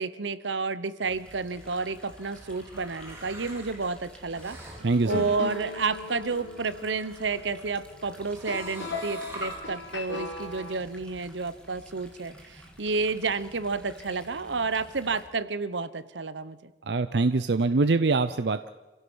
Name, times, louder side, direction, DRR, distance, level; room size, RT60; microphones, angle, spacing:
voice 1, 0.0-4.6 5.1-16.7, right 4 dB, 90° right, 15 dB, 1.0 m, -31 dB
sound 1, 1.0-15.2, equal, 5° left, 3.1 m, -51 dB
sound 2, 1.4-7.7 8.1-9.6, right 2 dB, 15° right, 4.3 m, -47 dB
sound 3, 4.8-10.8, left 3 dB, 90° left, 2.8 m, -38 dB
voice 2, 4.8-5.3 16.9-18.7, right 3 dB, 70° right, 11 dB, 0.6 m, -24 dB
27.5 x 16.5 x 6.3 m, 1.2 s
head